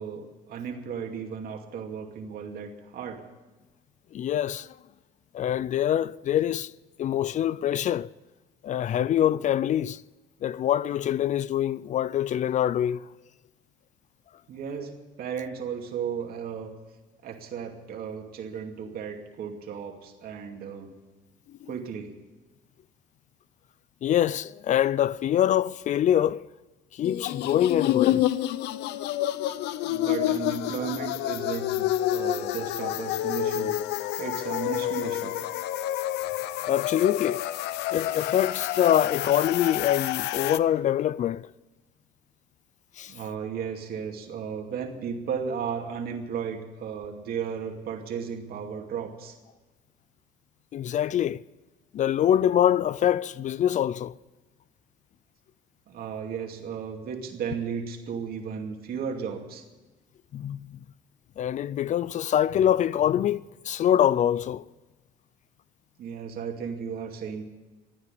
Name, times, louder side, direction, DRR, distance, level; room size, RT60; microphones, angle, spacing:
voice 1, 0.0-3.2 14.5-14.9 15.2-16.7 17.2-20.9 21.7-22.1 29.8-33.7 34.2-35.3 43.1-49.3 55.9-59.6 66.0-67.5, right 7 dB, 65° right, 2.5 m, -34 dB
voice 2, 4.1-4.7 5.3-6.7 7.0-8.1 8.6-10.0 10.4-13.0 21.6-21.7 24.0-26.5 26.9-28.2 36.7-37.4 37.9-41.5 43.0-43.1 50.7-51.4 51.9-54.1 60.3-60.8 61.4-64.6, left 10 dB, 45° left, 0.4 m, -24 dB
sound 1, 27.0-40.6, left 13 dB, 85° left, 0.7 m, -28 dB
14.5 x 9.7 x 9.9 m
cardioid pair, 110°, 17 cm